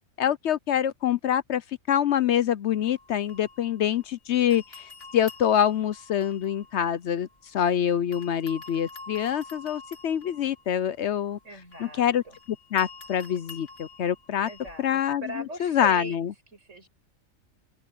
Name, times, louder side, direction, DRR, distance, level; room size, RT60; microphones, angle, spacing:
voice 1, 0.2-11.4 11.8-12.2 12.7-14.5 14.8-16.3, left 9 dB, 65° left, 0.9 m, -25 dB
sound 1, 2.7-4.2 4.5-7.7 8.1-14.9, left 3 dB, 50° left, 5.2 m, -47 dB
voice 2, 11.4-12.4 14.4-16.3 16.5-16.9, right 1 dB, 70° right, 7.0 m, -40 dB
open air
omnidirectional pair, 1.3 m